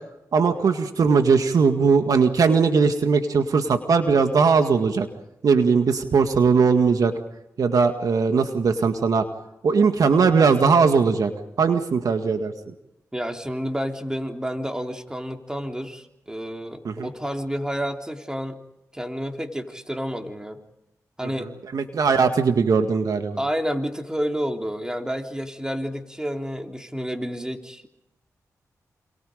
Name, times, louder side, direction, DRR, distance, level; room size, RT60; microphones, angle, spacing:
voice 1, 0.3-5.1 5.4-7.1 7.6-9.3 9.6-11.3 11.6-12.7 16.8-17.1 21.7-23.4, right 5 dB, 70° right, 7 dB, 1.9 m, -19 dB
voice 2, 13.1-18.6 18.9-20.6 21.2-21.5 23.4-27.8, equal, 10° right, 3 dB, 3.5 m, -30 dB
28.0 x 27.5 x 5.2 m, 0.88 s
cardioid pair, 55°, 6 cm